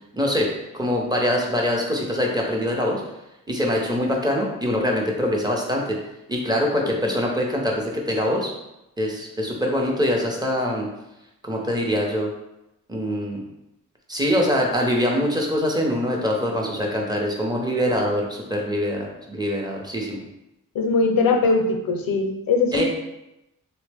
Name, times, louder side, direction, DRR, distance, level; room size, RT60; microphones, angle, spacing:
voice 1, 0.1-0.5 0.7-3.0 3.5-6.0 6.3-8.5 9.0-10.9 11.4-12.3 12.9-13.4 14.1-20.2 22.7-22.8, equal, 10° right, -1 dB, 0.6 m, -23 dB
voice 2, 20.7-22.8, left 3 dB, 90° left, 3 dB, 0.5 m, -21 dB
3.5 x 2.0 x 3.3 m, 0.90 s
wide cardioid pair, 100°, 34 cm